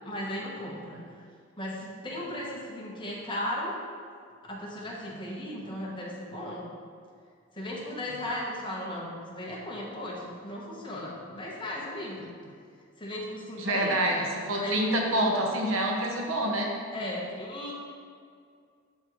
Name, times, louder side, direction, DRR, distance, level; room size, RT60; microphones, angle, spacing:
voice 1, 0.0-1.0 1.6-3.8 4.4-6.7 7.5-12.3 13.0-15.4 16.9-17.7, left 1 dB, 25° left, -3 dB, 1.1 m, -36 dB
voice 2, 13.6-14.2 14.5-16.7, right 1 dB, 80° right, 0 dB, 1.0 m, -26 dB
11.5 x 3.8 x 3.1 m, 2.2 s
head